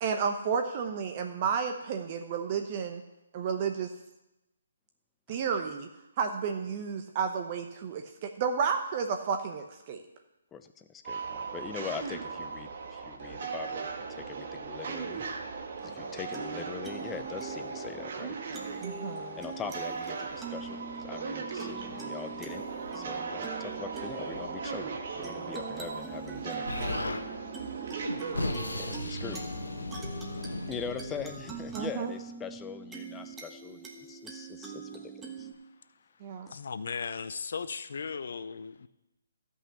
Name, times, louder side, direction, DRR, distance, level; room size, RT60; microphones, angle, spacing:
voice 1, 0.0-3.0 3.3-3.9 5.3-5.9 6.2-10.0 18.8-19.4 29.2-29.4 31.7-32.1 36.2-36.5, right 6 dB, 35° right, 5 dB, 0.9 m, -31 dB
voice 2, 10.5-15.2 15.8-18.4 19.4-22.7 22.9-26.7 28.8-29.5 30.7-35.5 36.5-36.6, left 7 dB, 15° left, 9 dB, 0.6 m, -42 dB
sound 1, 11.0-29.0, right 5 dB, 50° right, 1.4 m, -38 dB
sound 2, 15.8-35.5, right 5 dB, 10° right, 1.3 m, -44 dB
Explosion, 26.7-27.2 28.0-31.9, left 2 dB, 85° left, 1.1 m, -36 dB
voice 3, 36.5-38.9, left 5 dB, 60° left, 13 dB, 0.6 m, -37 dB
12.5 x 5.6 x 7.0 m, 0.95 s
figure-of-eight pair, 145°, 0 cm